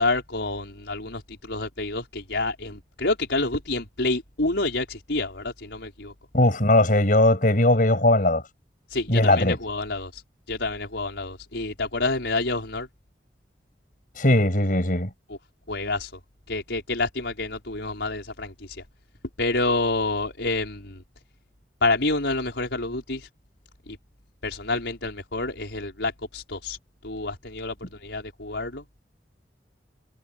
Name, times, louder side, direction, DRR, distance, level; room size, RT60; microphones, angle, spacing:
voice 1, 0.0-6.1 8.9-10.2 10.5-12.9 15.3-15.4 15.7-16.1 16.5-18.8 19.4-21.0 21.8-23.3 23.9-24.0 24.4-26.8 27.0-28.8, left 2 dB, 90° left, 5.3 m, -28 dB
voice 2, 6.3-8.4 9.1-9.6 14.2-15.1, left 1 dB, 50° left, 6.9 m, -19 dB
head